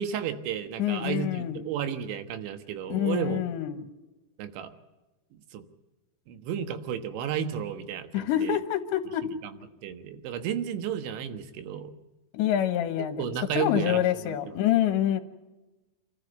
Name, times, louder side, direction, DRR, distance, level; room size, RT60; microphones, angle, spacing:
voice 1, 0.0-3.4 4.4-4.7 5.5-5.6 6.3-8.6 9.8-11.9 13.2-14.6, right 8 dB, 90° right, 9 dB, 3.8 m, -33 dB
voice 2, 0.8-1.6 2.9-3.8 8.1-9.2 12.3-13.2 13.6-15.2, left 11 dB, 80° left, 6 dB, 3.4 m, -26 dB
27.5 x 14.0 x 8.1 m, 1.1 s
omnidirectional pair, 5.2 m